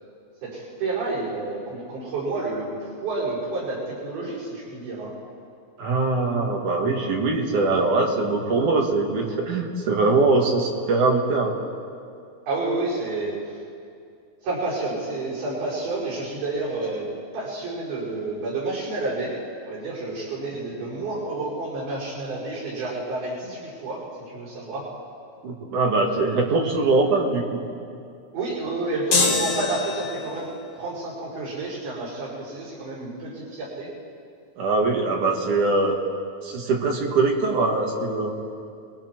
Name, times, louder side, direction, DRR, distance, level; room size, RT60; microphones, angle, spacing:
voice 1, 0.4-5.1 12.5-13.6 14.4-17.1 17.3-19.3 19.6-24.0 24.3-24.8 28.3-33.9, right 2 dB, 80° right, -8 dB, 7.4 m, -30 dB
voice 2, 5.8-11.5 25.4-27.6 34.6-36.0 36.4-38.3, right 3 dB, 60° right, 0 dB, 3.3 m, -22 dB
sound 1, 29.1-30.4, left 3 dB, 45° left, 2.2 m, -23 dB
30.0 x 21.0 x 4.6 m, 2.4 s
omnidirectional pair, 4.3 m